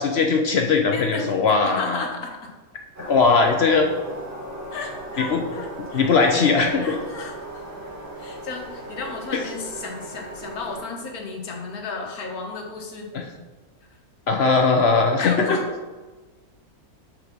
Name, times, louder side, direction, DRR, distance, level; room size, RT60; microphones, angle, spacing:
voice 1, 0.0-2.0 3.0-3.9 5.2-5.4 5.9-6.9 13.1-13.3 14.3-15.6, left 4 dB, 60° left, 3 dB, 0.7 m, -19 dB
voice 2, 0.9-1.3 1.6-2.5 4.7-6.0 6.8-7.4 8.2-13.1 15.2-15.6, left 4 dB, 75° left, 2 dB, 1.6 m, -33 dB
sound 1, 2.9-10.8, right 1 dB, 80° right, 2.8 m, -37 dB
5.3 x 4.6 x 6.1 m, 1.3 s
omnidirectional pair, 1.6 m